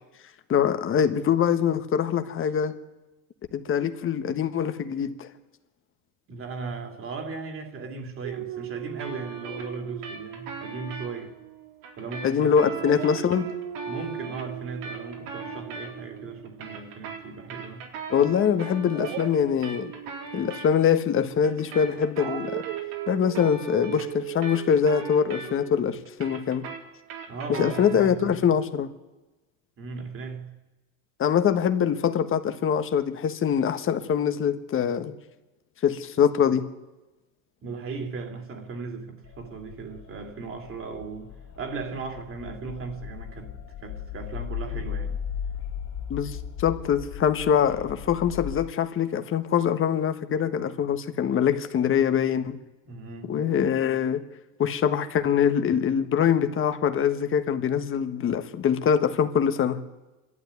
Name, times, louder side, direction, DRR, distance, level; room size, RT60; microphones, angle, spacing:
voice 1, 0.5-2.7 3.5-5.3 12.2-13.5 18.1-19.9 20.3-22.6 23.1-26.6 27.6-28.9 31.2-35.2 35.8-36.6 46.1-52.6 53.3-54.2 54.6-59.8, left 8 dB, 30° left, 1.4 m, -24 dB
voice 2, 6.3-11.4 12.0-13.0 13.9-17.9 27.3-28.4 29.8-30.5 37.6-43.5 43.8-45.2 52.9-53.4, right 4 dB, 30° right, 2.9 m, -37 dB
Dog, 8.2-12.4 12.8-17.8 18.9-25.9, right 12 dB, 55° right, 1.4 m, -39 dB
sound 1, 9.0-11.1 11.8-16.2 16.5-20.7 21.4-25.8 26.1-28.2, right 5 dB, 80° right, 4.0 m, -39 dB
sound 2, 39.2-48.7, left 8 dB, 65° left, 3.1 m, -37 dB
26.0 x 12.5 x 9.6 m
supercardioid pair, 125°, 40 cm